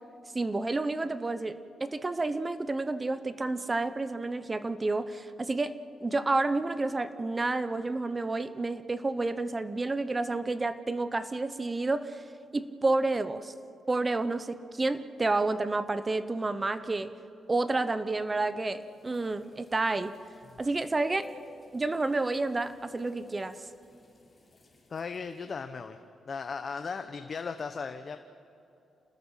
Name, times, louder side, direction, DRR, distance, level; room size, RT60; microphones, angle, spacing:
voice 1, 0.3-12.2 12.5-13.5 13.9-17.1 17.5-20.1 20.6-21.3 21.7-23.5, right 2 dB, 25° right, 12 dB, 0.9 m, -30 dB
sound 1, 18.8-25.4, left 2 dB, 25° left, 4.9 m, -52 dB
voice 2, 24.9-26.0 26.3-28.2, left 5 dB, 45° left, 8 dB, 0.9 m, -36 dB
28.5 x 19.5 x 5.7 m, 2.7 s
cardioid pair, 105°, 0 cm